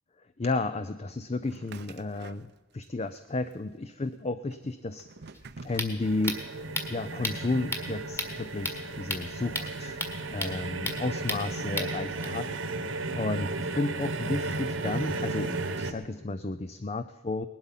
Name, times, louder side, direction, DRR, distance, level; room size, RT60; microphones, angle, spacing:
voice 1, 0.4-5.1 5.6-6.4 6.9-17.5, left 3 dB, 30° left, 12 dB, 0.5 m, -33 dB
sound 1, 1.4-2.9 3.1-3.9 4.5-7.0, right 4 dB, 55° right, 0.7 m, -48 dB
sound 2, 5.3-12.3, left 1 dB, 10° left, 1.6 m, -36 dB
sound 3, 6.0-15.9, right 2 dB, 70° right, 1.3 m, -34 dB
19.0 x 12.0 x 5.7 m, 1.2 s
head